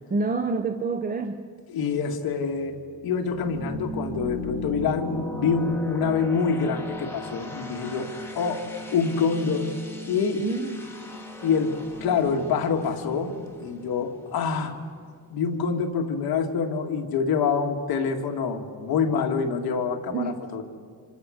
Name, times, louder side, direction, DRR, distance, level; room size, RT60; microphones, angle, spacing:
voice 1, 0.1-1.5 10.4-10.8 20.1-20.4, right 3 dB, 20° right, 7 dB, 0.7 m, -27 dB
voice 2, 1.7-2.8 3.0-8.6 8.9-9.7 10.1-10.4 11.4-13.3 13.6-14.8 15.3-20.6, left 5 dB, 60° left, 3 dB, 2.0 m, -26 dB
sound 1, 2.2-14.8, left 1 dB, 5° left, 2.3 m, -38 dB
27.5 x 27.5 x 6.4 m, 2.1 s
cardioid pair, 175°, 40 cm